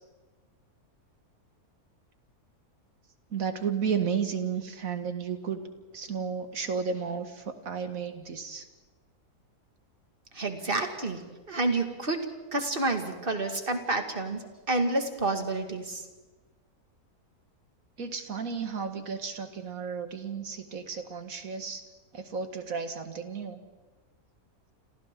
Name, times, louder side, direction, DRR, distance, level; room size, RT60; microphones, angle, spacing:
voice 1, 3.3-5.6 5.9-8.7 18.0-21.8 22.1-23.6, right 6 dB, 65° right, 7 dB, 2.1 m, -33 dB
voice 2, 10.3-11.2 11.5-12.3 12.5-16.0, right 2 dB, 35° right, 5 dB, 2.2 m, -29 dB
30.0 x 27.5 x 3.8 m, 1.2 s
omnidirectional pair, 1.6 m